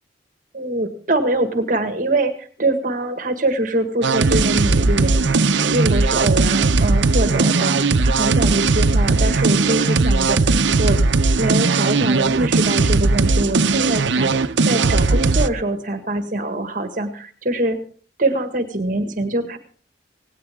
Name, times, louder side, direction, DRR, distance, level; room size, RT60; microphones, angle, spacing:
voice 1, 0.5-11.0 11.4-17.8 18.2-19.6, right 2 dB, 45° right, 8 dB, 1.8 m, -24 dB
sound 1, 4.0-15.5, right 3 dB, 90° right, 0.8 m, -18 dB
18.5 x 17.5 x 3.6 m, 0.41 s
head